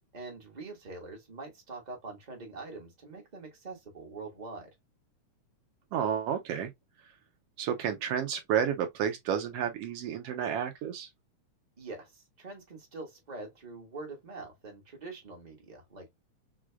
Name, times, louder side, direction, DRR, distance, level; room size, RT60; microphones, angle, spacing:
voice 1, 0.1-4.7 11.8-16.1, right 3 dB, 50° right, 0.5 m, -44 dB
voice 2, 5.9-6.7 7.6-11.1, right 8 dB, 75° right, 1.5 m, -31 dB
6.1 x 2.3 x 2.2 m
omnidirectional pair, 3.3 m